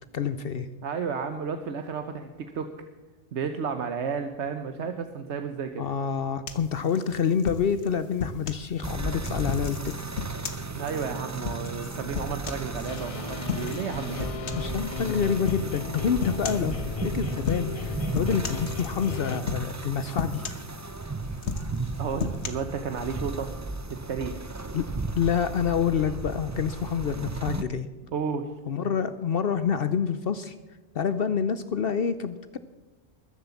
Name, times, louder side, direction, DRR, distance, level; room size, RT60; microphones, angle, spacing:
voice 1, 0.1-0.7 5.8-10.0 14.6-20.4 24.7-24.8 25.1-27.9 28.7-30.5 30.9-32.6, left 7 dB, 60° left, 12 dB, 0.8 m, -27 dB
voice 2, 0.8-2.7 3.3-5.8 10.8-14.3 22.0-23.5 23.9-24.5 28.1-28.5, right 6 dB, 85° right, 7 dB, 1.2 m, -32 dB
sound 1, 6.5-8.7 9.2-13.0 13.5-13.9 14.2-14.8 15.5-15.7 16.2-16.7 17.4-17.9 18.1-19.1 19.5-19.9 20.2-21.0 21.4-22.5, left 5 dB, 80° left, 1.5 m, -34 dB
sound 2, 8.8-27.6, right 3 dB, 20° right, 0.6 m, -35 dB
sound 3, 12.9-19.4, left 6 dB, 45° left, 0.5 m, -36 dB
21.0 x 7.8 x 7.1 m, 1.2 s
omnidirectional pair, 1.1 m